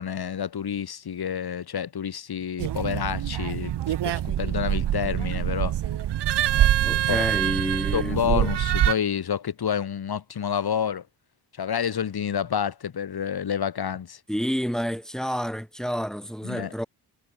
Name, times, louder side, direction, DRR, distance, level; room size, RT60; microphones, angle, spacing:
voice 1, 0.0-3.7 4.0-5.8 6.5-6.7 7.1-7.2 7.9-11.0 11.6-14.2 16.4-16.7, left 8 dB, 60° left, 3.7 m, -29 dB
sound 1, 2.6-8.9, right 11 dB, 75° right, 1.4 m, -25 dB
voice 2, 6.8-8.5 14.3-16.9, equal, ahead, 4.1 m, -29 dB
cardioid pair, 80°, 42 cm